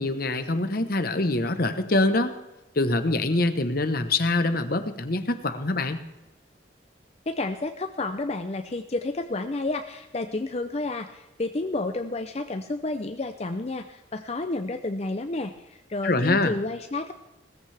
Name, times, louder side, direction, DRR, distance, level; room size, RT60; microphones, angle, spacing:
voice 1, 0.0-2.3 2.8-6.0 16.0-16.5, left 2 dB, 50° left, 9 dB, 1.1 m, -24 dB
voice 2, 7.3-17.1, left 2 dB, 35° left, 7 dB, 0.5 m, -30 dB
19.0 x 14.5 x 3.4 m, 1.0 s
head